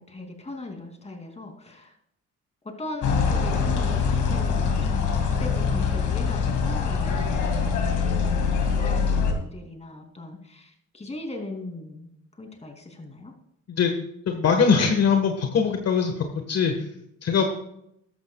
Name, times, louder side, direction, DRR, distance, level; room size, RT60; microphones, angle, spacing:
voice 1, 0.0-1.9 2.8-12.1 12.4-13.3, left 2 dB, 20° left, 3 dB, 2.9 m, -39 dB
sound 1, 3.0-9.3, left 5 dB, 75° left, 2.2 m, -24 dB
voice 2, 14.3-16.7 17.2-17.4, left 6 dB, 55° left, 4 dB, 1.5 m, -22 dB
14.0 x 11.5 x 2.4 m, 0.75 s
cardioid pair, 90°, 30 cm